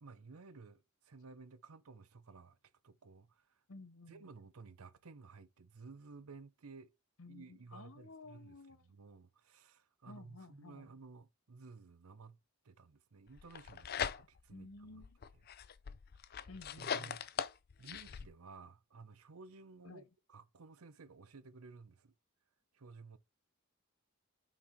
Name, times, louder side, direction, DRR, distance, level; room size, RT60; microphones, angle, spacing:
voice 1, 0.0-2.6 2.8-3.6 4.1-6.9 7.3-8.6 8.8-12.4 12.6-15.1 16.3-16.5 16.8-17.2 17.8-22.1 22.7-23.2, right 4 dB, 80° right, 0.7 m, -55 dB
voice 2, 3.7-4.3 7.2-8.8 10.0-10.9 14.5-15.2 16.5-17.2 19.8-20.0, left 3 dB, 70° left, 0.8 m, -54 dB
sound 1, 13.4-14.6 15.0-18.3, left 7 dB, 45° left, 0.4 m, -41 dB
6.0 x 4.2 x 4.4 m
head